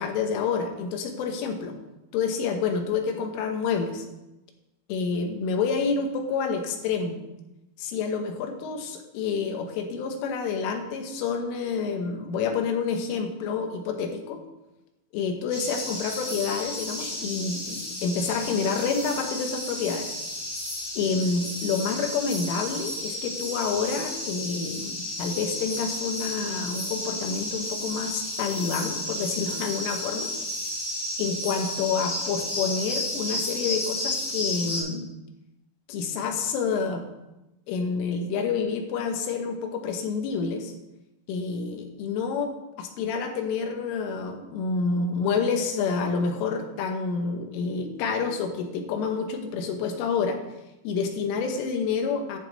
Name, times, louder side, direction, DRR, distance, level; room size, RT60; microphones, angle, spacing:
voice 1, 0.0-1.8 2.1-4.1 4.9-7.2 7.8-14.4 15.1-20.2 21.0-30.3 31.2-35.1 35.9-37.0 37.7-40.7 41.3-42.5 42.8-50.4 50.9-52.4, left 5 dB, 80° left, 4 dB, 3.6 m, -28 dB
sound 1, 15.5-34.8, left 1 dB, 35° left, 3.1 m, -32 dB
10.5 x 8.3 x 4.0 m, 0.96 s
omnidirectional pair, 5.8 m